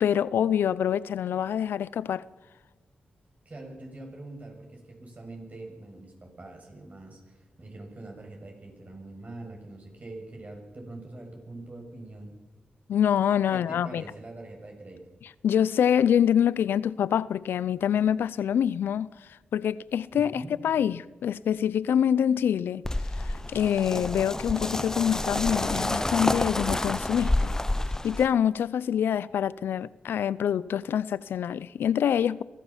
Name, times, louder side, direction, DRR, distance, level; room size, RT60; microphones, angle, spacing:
voice 1, 0.0-2.2 12.9-14.0 15.4-19.1 19.5-22.8 23.2-27.6 28.0-32.4, left 9 dB, 90° left, 0.6 m, -25 dB
voice 2, 3.4-12.3 13.5-15.1 20.1-20.5, right 2 dB, 45° right, 6.8 m, -43 dB
sound 1, 22.8-28.3, left 1 dB, 15° left, 0.6 m, -29 dB
23.5 x 15.0 x 7.4 m
cardioid pair, 60°, 4 cm